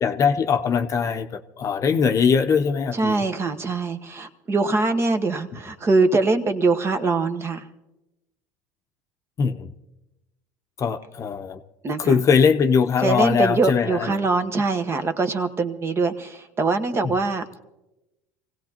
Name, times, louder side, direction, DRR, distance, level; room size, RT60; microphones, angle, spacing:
voice 1, 0.0-3.2 9.4-9.7 10.8-11.6 12.0-14.2 17.0-17.2, left 6 dB, 40° left, 8 dB, 0.8 m, -21 dB
voice 2, 2.9-7.6 11.8-12.2 13.0-17.4, right 3 dB, 30° right, 8 dB, 1.2 m, -23 dB
25.0 x 17.0 x 2.9 m, 0.97 s
hypercardioid pair, 85°, 8 cm